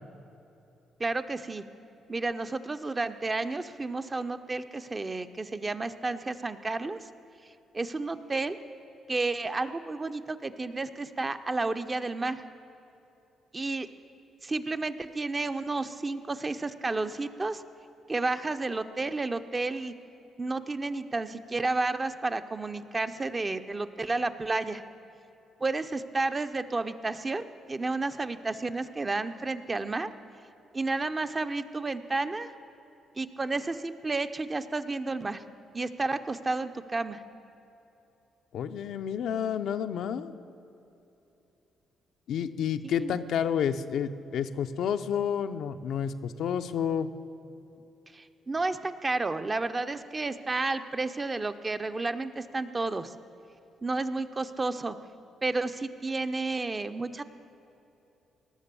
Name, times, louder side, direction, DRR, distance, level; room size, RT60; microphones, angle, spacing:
voice 1, 1.0-1.6 2.1-7.0 7.7-8.6 9.1-12.4 13.5-13.9 14.4-17.6 18.1-19.9 20.4-24.8 25.6-30.1 30.7-32.5 33.2-35.4 35.7-37.2 42.8-43.2 48.1-53.1 53.8-55.0 55.4-57.2, right 3 dB, 25° right, 10 dB, 0.5 m, -31 dB
voice 2, 38.5-40.3 42.3-47.1, left 8 dB, 75° left, 9 dB, 0.5 m, -30 dB
18.5 x 6.7 x 6.9 m, 2.9 s
cardioid pair, 90°, 0 cm